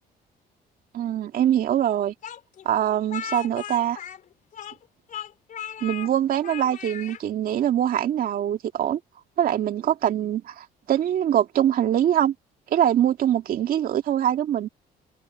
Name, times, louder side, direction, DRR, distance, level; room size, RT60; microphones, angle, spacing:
voice 1, 0.9-2.1 2.6-4.0 5.8-9.0 9.4-12.3 12.7-14.7, right 10 dB, 60° right, 2.3 m, -23 dB
Speech, 2.2-4.8 5.1-6.1 6.4-7.2, left 9 dB, 50° left, 4.4 m, -37 dB
cardioid pair, 110°, 17 cm